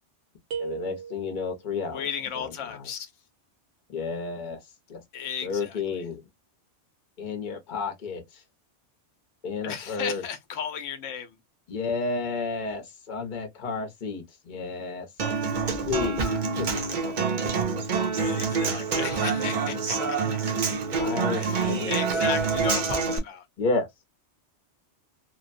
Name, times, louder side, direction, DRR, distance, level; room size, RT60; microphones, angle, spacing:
sound 1, 0.5-1.7, right 7 dB, 85° right, 1.2 m, -36 dB
voice 1, 0.6-2.1 2.3-2.9 3.9-4.6 4.9-5.0 5.4-6.2 7.2-8.4 9.4-10.2 11.7-15.1 15.9-16.2 16.6-17.0 18.6-19.0 21.0-22.4 23.6-23.9, left 4 dB, 45° left, 0.9 m, -32 dB
voice 2, 1.8-3.1 5.1-5.8 9.6-11.4 18.2-20.4 21.3-23.4, left 8 dB, 90° left, 1.0 m, -35 dB
Human voice / Acoustic guitar, 15.2-23.2, right 5 dB, 50° right, 0.7 m, -26 dB
2.9 x 2.2 x 2.5 m
omnidirectional pair, 1.2 m